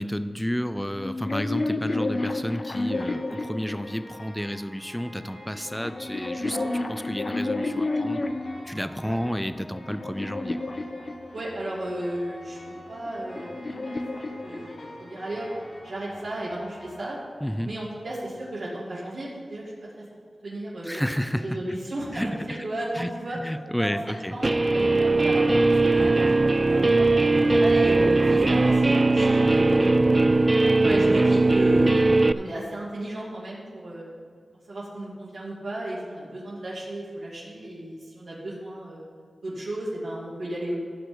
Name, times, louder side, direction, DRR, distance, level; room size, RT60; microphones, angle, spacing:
voice 1, 0.0-8.3 8.6-10.7 17.4-17.7 20.8-21.8 22.1-22.7 22.9-24.4, equal, 5° left, 11 dB, 0.6 m, -31 dB
sound 1, 0.9-4.3 5.2-8.6 9.3-11.7 12.8-15.2, left 2 dB, 50° left, 0.6 m, -31 dB
sound 2, 2.9-17.7, left 1 dB, 85° left, 2.6 m, -46 dB
voice 2, 11.3-13.8 14.1-15.5 15.8-17.2 17.6-20.0 20.4-21.0 21.4-23.4 23.8-30.2 30.8-34.2 34.7-39.0 39.4-40.8, right 1 dB, 85° right, -8 dB, 2.4 m, -34 dB
Guitar, 24.4-32.3, right 2 dB, 40° right, 0.3 m, -19 dB
13.5 x 6.1 x 5.2 m, 2.1 s
cardioid pair, 45°, 0 cm